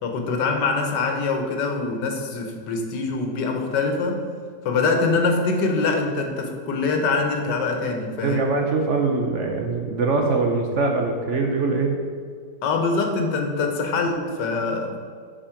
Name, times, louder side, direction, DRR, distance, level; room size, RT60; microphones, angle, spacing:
voice 1, 0.0-4.2 4.6-8.5 12.6-15.0, left 3 dB, 85° left, 4 dB, 1.6 m, -24 dB
voice 2, 8.2-12.0, right 3 dB, 55° right, 2 dB, 0.9 m, -23 dB
7.3 x 5.1 x 5.0 m, 2.1 s
omnidirectional pair, 1.8 m